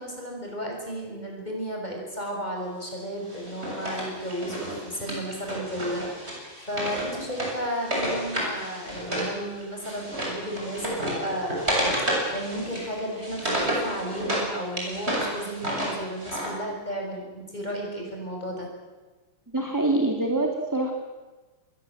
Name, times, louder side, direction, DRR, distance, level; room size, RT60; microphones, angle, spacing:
voice 1, 0.0-18.7, equal, 20° left, 0 dB, 6.8 m, -33 dB
Wood, 3.3-9.3 9.6-14.5 14.8-16.5, right 1 dB, 30° right, 8.0 m, -30 dB
voice 2, 19.5-20.9, right 2 dB, 10° right, 2 dB, 2.1 m, -25 dB
27.5 x 22.0 x 7.7 m, 1.2 s
omnidirectional pair, 2.3 m